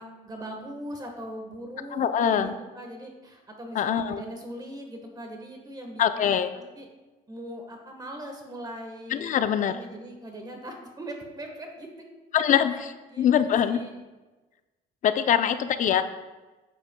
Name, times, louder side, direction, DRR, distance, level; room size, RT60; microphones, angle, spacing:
voice 1, 0.0-6.4 6.7-6.9 7.3-11.9 12.7-12.8 13.1-14.0 15.2-15.7, right 1 dB, 20° right, 3 dB, 1.2 m, -40 dB
voice 2, 1.9-2.5 3.7-4.2 6.0-6.5 9.1-9.7 12.3-13.8 15.0-16.0, left 9 dB, 50° left, 11 dB, 0.5 m, -23 dB
9.9 x 8.3 x 2.2 m, 1.2 s
cardioid pair, 110°, 17 cm